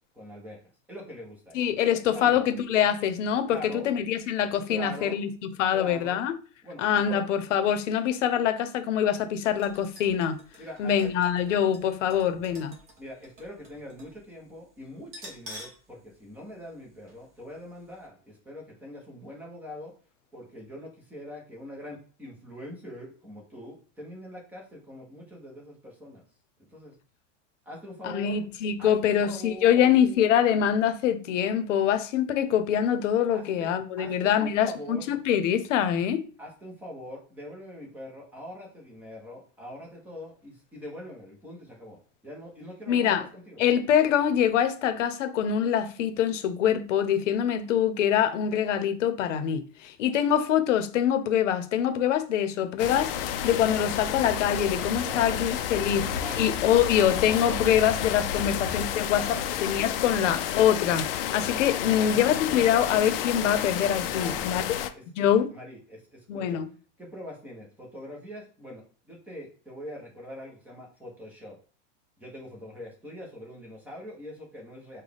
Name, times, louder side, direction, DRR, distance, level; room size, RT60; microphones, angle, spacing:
voice 1, 0.1-0.6 0.9-1.6 2.0-2.5 3.3-3.9 4.7-5.2 5.7-6.2 6.6-7.2 10.6-11.2 13.0-19.9 20.3-26.2 26.7-27.0 27.6-28.4 28.8-29.9 33.3-35.1 36.4-43.6 55.0-55.3 55.7-56.5 59.0-59.5 61.8-62.8 64.0-66.6 67.0-71.6 72.2-75.0, equal, 5° right, 0.6 m, -43 dB
voice 2, 1.5-5.3 5.6-6.3 6.8-10.3 10.8-12.7 28.0-36.2 42.9-43.2 43.6-56.1 56.4-59.3 59.6-64.6 65.2-65.5 66.3-66.7, left 9 dB, 80° left, 0.7 m, -24 dB
sound 1, 9.5-14.2 14.4-14.5 15.0-15.9 16.2-16.3 17.1-17.2 17.6-17.7, equal, 25° right, 1.0 m, -48 dB
sound 2, 52.8-64.9, left 9 dB, 50° left, 0.4 m, -30 dB
3.8 x 2.3 x 3.4 m
supercardioid pair, 170°, 36 cm